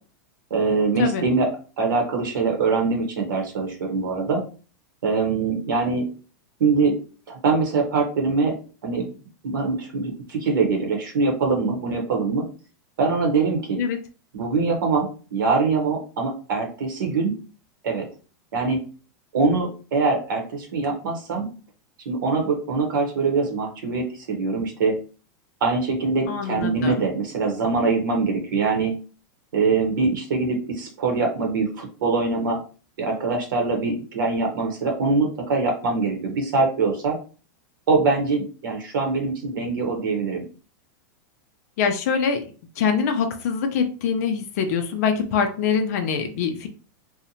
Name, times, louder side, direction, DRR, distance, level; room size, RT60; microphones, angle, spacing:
voice 1, 0.5-1.5 1.8-4.4 5.0-6.1 6.6-7.0 7.3-8.5 8.8-9.1 9.4-12.4 13.0-13.8 14.3-17.3 17.8-18.0 18.5-18.8 19.3-21.5 22.1-24.9 25.6-28.9 29.5-32.6 33.0-37.2 37.9-40.5, right 4 dB, 85° right, 2 dB, 0.9 m, -23 dB
voice 2, 26.3-27.1 41.8-42.4 42.8-46.7, left 6 dB, 55° left, 5 dB, 0.4 m, -24 dB
2.7 x 2.1 x 2.7 m, 0.37 s
supercardioid pair, 165°, 10 cm